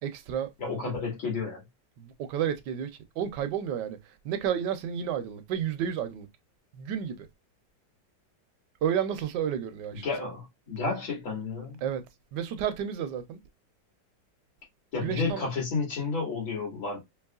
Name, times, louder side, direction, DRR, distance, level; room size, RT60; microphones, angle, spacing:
voice 1, 0.0-0.5 2.0-6.3 6.7-7.3 8.8-10.1 11.8-12.0 12.3-13.4 15.0-15.4, right 9 dB, 70° right, 1.1 m, -31 dB
voice 2, 0.6-1.6 9.9-11.8 14.9-17.0, left 4 dB, 75° left, 2.6 m, -31 dB
4.7 x 2.9 x 2.3 m
omnidirectional pair, 2.2 m